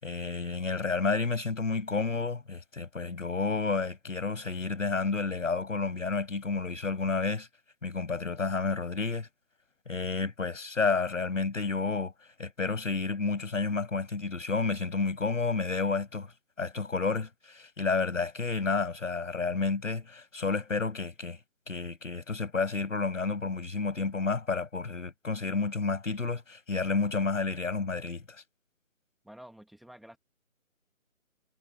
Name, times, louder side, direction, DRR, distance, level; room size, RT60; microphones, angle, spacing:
voice 1, 0.0-7.5 7.8-9.3 9.9-12.1 12.4-16.3 16.6-21.4 21.7-28.2, left 4 dB, 65° left, 7.1 m, -30 dB
voice 2, 29.2-30.2, equal, ahead, 0.9 m, -50 dB
figure-of-eight pair, 160°, 42 cm